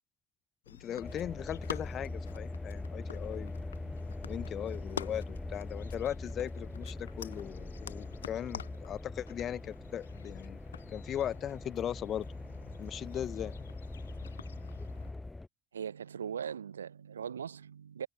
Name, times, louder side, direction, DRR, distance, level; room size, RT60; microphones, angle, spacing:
sound 1, 0.6-15.1, left 9 dB, 75° left, 1.2 m, -49 dB
voice 1, 0.7-3.6 4.3-10.6 10.9-12.3 12.8-13.6, left 10 dB, 45° left, 1.2 m, -38 dB
sound 2, 1.0-15.5, left 2 dB, 15° left, 0.9 m, -42 dB
voice 2, 15.7-18.1, right 8 dB, 80° right, 0.9 m, -40 dB
figure-of-eight pair, 55°, 0 cm